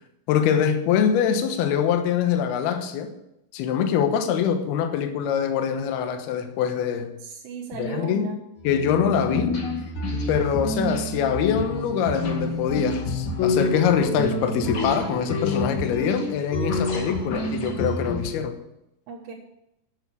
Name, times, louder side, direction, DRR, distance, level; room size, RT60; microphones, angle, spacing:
voice 1, 0.3-3.1 3.5-7.1 7.7-8.3 8.6-9.6 10.3-18.6, left 8 dB, 75° left, 7 dB, 2.9 m, -24 dB
voice 2, 7.2-8.4 8.9-9.2 19.1-19.3, right 5 dB, 75° right, -6 dB, 3.7 m, -36 dB
sound 1, 8.6-18.3, left 2 dB, 50° left, 3.1 m, -28 dB
11.5 x 7.0 x 8.4 m, 0.85 s
omnidirectional pair, 4.9 m